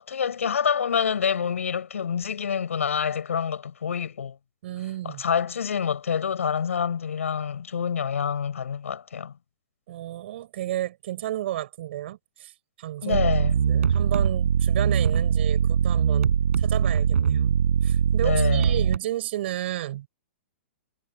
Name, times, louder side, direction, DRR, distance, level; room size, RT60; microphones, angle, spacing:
voice 1, 0.1-4.4 5.0-9.3 13.0-13.6 18.2-18.9, left 7 dB, 90° left, 6.7 m, -27 dB
voice 2, 4.6-5.2 9.9-12.5 12.8-13.2 13.7-17.6 17.8-20.1, right 13 dB, 55° right, 7.7 m, -32 dB
sound 1, 13.1-19.0, right 7 dB, 85° right, 5.0 m, -22 dB
hypercardioid pair, 150°, 7 cm